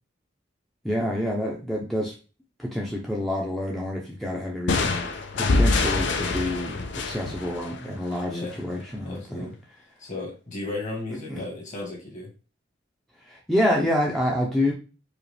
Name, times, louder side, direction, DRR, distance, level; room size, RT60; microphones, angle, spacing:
voice 1, 0.8-2.1 2.6-5.1 5.4-9.5 11.3-11.4 13.3-14.7, left 1 dB, ahead, -3 dB, 0.5 m, -27 dB
sound 1, 4.7-8.3, left 3 dB, 60° left, 0.5 m, -25 dB
voice 2, 8.2-8.6 9.0-9.6 10.0-12.3, left 2 dB, 40° left, -1 dB, 1.5 m, -34 dB
4.9 x 2.4 x 3.2 m, 0.34 s
head